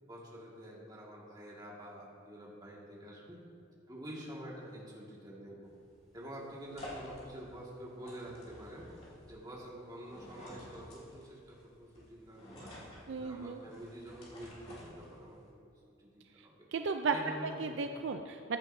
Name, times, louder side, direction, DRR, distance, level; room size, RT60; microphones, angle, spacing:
voice 1, 0.0-3.4 3.9-5.7 6.1-8.9 9.3-12.7 13.1-15.7 16.0-16.7 17.1-17.8, equal, 20° right, -5 dB, 1.9 m, -47 dB
sound 1, 5.6-15.5, left 1 dB, 30° left, 2.5 m, -52 dB
voice 2, 13.1-13.6 16.4-16.5 16.7-17.2 17.4-18.6, right 5 dB, 60° right, 6 dB, 0.4 m, -35 dB
14.5 x 9.7 x 2.7 m, 2.6 s
head